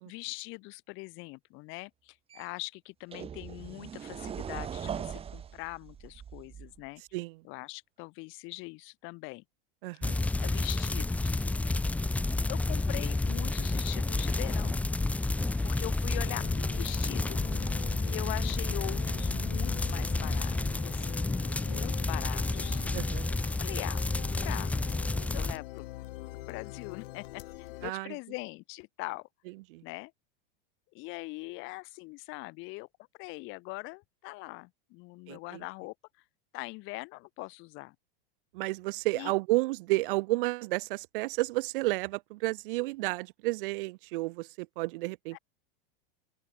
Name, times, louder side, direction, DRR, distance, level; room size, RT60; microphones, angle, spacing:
voice 1, 0.1-7.0 7.4-9.4 10.4-11.4 12.5-14.8 15.6-17.4 18.1-22.8 23.5-24.0 24.4-24.7 25.0-25.9 26.5-29.3 29.8-30.1 30.9-32.9 33.2-35.9 36.5-37.9 39.1-39.3 45.3-45.4, left 26 dB, 40° left, 2.4 m, -42 dB
sound 1, 2.3-2.4 3.1-6.9, right 8 dB, 20° right, 3.5 m, -40 dB
voice 2, 7.1-7.4 9.8-10.2 22.9-23.4 27.8-28.2 29.7-29.8 35.3-35.6 38.5-45.4, right 21 dB, 60° right, 0.5 m, -32 dB
sound 2, 10.0-25.6, left 2 dB, 5° left, 0.9 m, -30 dB
sound 3, 16.2-27.9, left 18 dB, 70° left, 1.2 m, -44 dB
open air
supercardioid pair, 155°, 29 cm